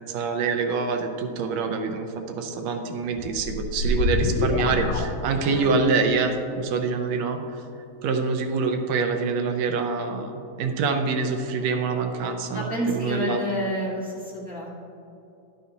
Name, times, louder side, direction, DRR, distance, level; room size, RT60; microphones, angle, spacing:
voice 1, 0.1-7.4 8.0-13.4, right 4 dB, 75° right, 5 dB, 1.7 m, -26 dB
sound 1, 3.1-5.8, left 2 dB, 75° left, 1.8 m, -26 dB
voice 2, 12.5-14.8, equal, 5° right, -8 dB, 0.7 m, -29 dB
11.5 x 9.3 x 2.8 m, 2.7 s
omnidirectional pair, 3.4 m